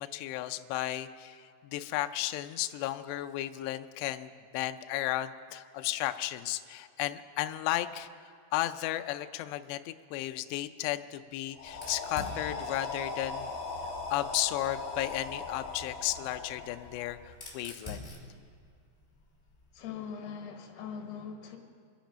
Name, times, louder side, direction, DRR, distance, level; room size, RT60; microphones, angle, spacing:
voice 1, 0.0-8.1 8.5-13.5 14.1-18.0, left 14 dB, 90° left, 9 dB, 2.4 m, -34 dB
sound 1, 11.5-17.4, left 3 dB, 45° left, 1.8 m, -39 dB
Fire, 11.7-14.4 15.6-19.8, left 2 dB, 15° left, 2.1 m, -48 dB
voice 2, 19.7-21.6, left 7 dB, 65° left, 3 dB, 3.2 m, -41 dB
26.5 x 10.5 x 5.2 m, 2.3 s
omnidirectional pair, 5.6 m